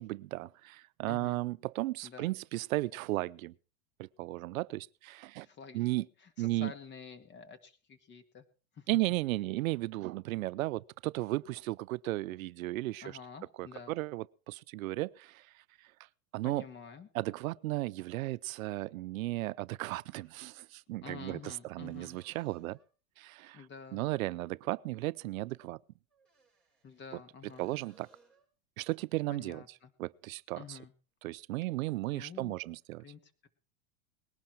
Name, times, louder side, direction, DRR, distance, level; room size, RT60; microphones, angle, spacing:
voice 1, 0.0-3.5 4.0-5.5 5.7-6.1 6.4-6.7 8.9-13.1 13.6-15.5 16.3-16.6 17.1-22.8 23.2-23.6 23.9-25.8 27.6-28.1 28.8-29.6 30.0-30.8 31.2-33.0, right 18 dB, 85° right, 0.6 m, -35 dB
voice 2, 1.0-1.4 2.0-2.3 5.4-5.9 6.2-8.5 8.7-8.9 13.0-14.0 16.4-17.1 20.9-22.2 23.5-24.0 26.8-27.7 29.3-29.9 30.6-30.9 32.1-32.6 33.0-33.5, left 6 dB, 25° left, 1.9 m, -49 dB
sound 1, 20.0-20.8 21.8-23.0 26.1-27.2 27.5-28.5 32.2-32.3, right 3 dB, ahead, 5.2 m, -66 dB
19.5 x 11.5 x 4.5 m
supercardioid pair, 140°, 40 cm